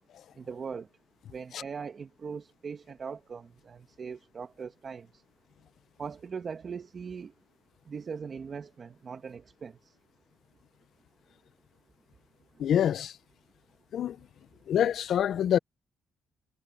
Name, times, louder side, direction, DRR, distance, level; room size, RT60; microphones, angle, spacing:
voice 1, 0.4-0.9 1.3-5.2 6.0-7.3 7.8-10.0 12.5-12.7, right 6 dB, 45° right, 1.4 m, -40 dB
voice 2, 12.6-13.1 13.9-14.2 14.7-15.6, left 9 dB, 65° left, 0.6 m, -26 dB
cardioid pair, 90°, 0 cm